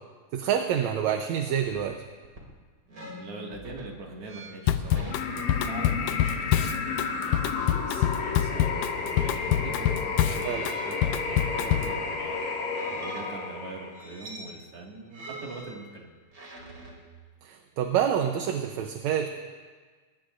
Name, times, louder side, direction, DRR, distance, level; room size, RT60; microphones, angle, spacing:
voice 1, 0.3-2.0 10.4-10.7 17.4-19.3, right 9 dB, 75° right, 4 dB, 2.0 m, -27 dB
sound 1, 1.6-1.9 2.2-2.5 2.9-6.5 6.9-7.2 7.5-8.6 9.1-9.8 10.3-12.2 12.7-13.4 13.9-14.7 15.1-17.1, right 1 dB, 35° right, 3.2 m, -45 dB
voice 2, 2.9-12.4 12.6-16.1, right 3 dB, 50° right, -1 dB, 2.9 m, -43 dB
Drum kit / Drum, 4.7-12.0, left 11 dB, 80° left, 2.0 m, -26 dB
sound 2, 5.1-14.1, left 4 dB, 55° left, 2.1 m, -32 dB
22.0 x 20.0 x 2.6 m, 1.4 s
omnidirectional pair, 3.5 m